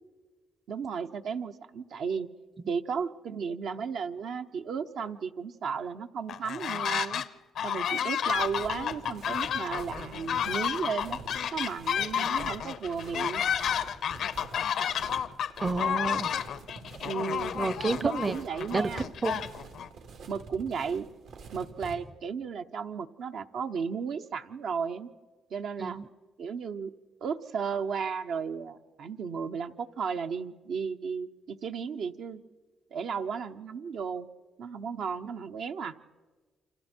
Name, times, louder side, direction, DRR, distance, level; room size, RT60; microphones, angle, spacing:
voice 1, 0.7-2.3 2.7-7.2 7.6-11.2 11.5-13.4 17.0-17.5 18.0-19.1 20.3-21.1 21.5-25.1 25.5-26.0 26.4-26.9 27.2-32.4 32.9-34.3 34.6-35.9, right 6 dB, 70° right, 6 dB, 0.8 m, -34 dB
sound 1, 6.3-7.3 7.6-19.9, left 8 dB, 70° left, 0.7 m, -31 dB
sound 2, 8.3-22.0, right 4 dB, 85° right, 3.0 m, -47 dB
voice 2, 15.6-16.3 17.5-18.3 18.7-18.9 19.2-19.4 25.8-26.1, right 3 dB, 30° right, 16 dB, 0.7 m, -29 dB
28.5 x 26.0 x 4.5 m, 1.3 s
cardioid pair, 90°, 0 cm